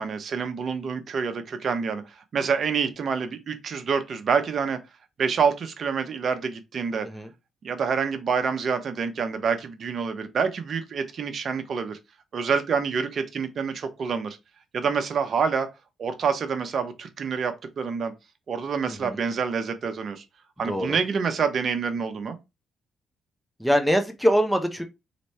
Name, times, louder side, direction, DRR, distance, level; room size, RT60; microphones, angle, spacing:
voice 1, 0.0-4.8 5.2-7.1 7.6-12.0 12.3-14.4 14.7-15.7 16.0-18.1 18.5-20.2 20.6-22.4, right 6 dB, 50° right, 0.9 m, -27 dB
voice 2, 18.9-19.2 20.6-21.0 23.6-24.8, equal, 5° left, 1.0 m, -23 dB
3.2 x 3.1 x 4.3 m
cardioid pair, 90°, 0 cm